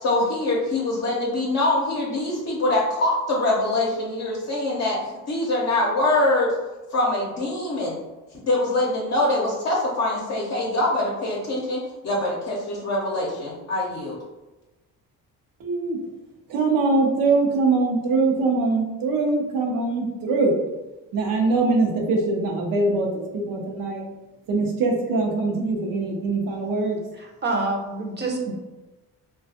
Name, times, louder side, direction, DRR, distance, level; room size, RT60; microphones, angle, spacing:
voice 1, 0.0-5.0 5.3-6.5 6.9-8.0 8.4-14.2, left 2 dB, 50° left, -4 dB, 0.6 m, -24 dB
voice 2, 15.6-16.0 16.5-20.6 21.1-24.0 24.5-27.0, right 3 dB, 75° right, 1 dB, 0.7 m, -22 dB
voice 3, 27.2-28.5, right 3 dB, 30° right, 1 dB, 0.6 m, -27 dB
2.3 x 2.3 x 2.6 m, 1.1 s
cardioid pair, 80°, 34 cm